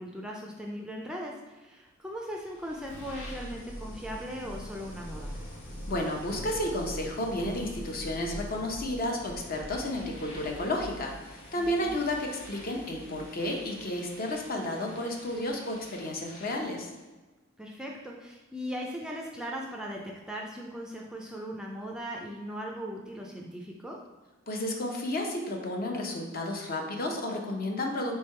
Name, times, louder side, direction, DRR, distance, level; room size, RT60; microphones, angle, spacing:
voice 1, 0.0-5.4 11.6-12.0 17.6-24.0, equal, 5° right, -1 dB, 0.4 m, -39 dB
sound 1, 2.3-16.9, equal, 70° left, 1.2 m, -44 dB
voice 2, 5.9-16.9 24.5-28.2, left 1 dB, 45° left, 1 dB, 0.7 m, -32 dB
3.6 x 3.4 x 4.3 m, 1.2 s
head